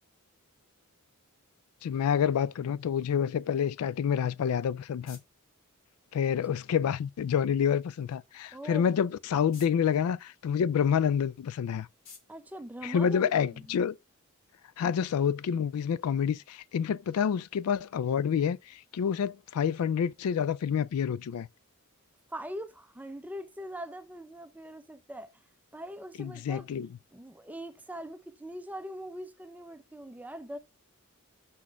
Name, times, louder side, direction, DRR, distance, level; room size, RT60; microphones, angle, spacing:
voice 1, 1.8-5.2 6.1-11.9 12.8-14.0 14.8-21.5 26.2-26.9, left 7 dB, 90° left, 0.3 m, -28 dB
sound 1, 4.3-13.7, left 5 dB, 65° left, 2.3 m, -60 dB
voice 2, 8.5-9.0 12.3-13.8 22.3-25.3 25.7-26.7 27.1-30.6, equal, 5° right, 0.5 m, -42 dB
5.7 x 4.2 x 6.1 m
head